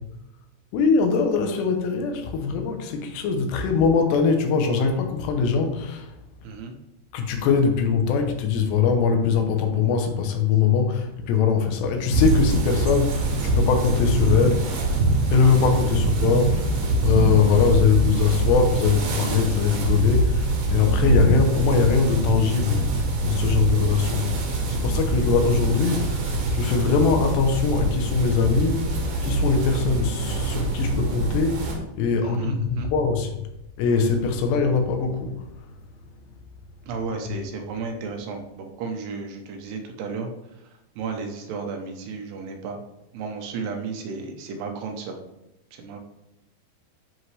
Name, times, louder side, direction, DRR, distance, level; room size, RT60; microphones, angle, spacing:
voice 1, 0.7-6.1 7.1-14.9 15.3-16.6 17.0-24.3 24.7-33.3 33.8-35.4, left 5 dB, 80° left, 4 dB, 3.1 m, -22 dB
voice 2, 6.4-6.7 32.2-32.9 36.9-42.8 43.1-45.2 45.7-46.0, right 4 dB, 80° right, 3 dB, 2.9 m, -33 dB
sound 1, 12.1-31.8, right 2 dB, 60° right, 2.4 m, -24 dB
10.0 x 4.6 x 3.2 m, 0.91 s
omnidirectional pair, 4.9 m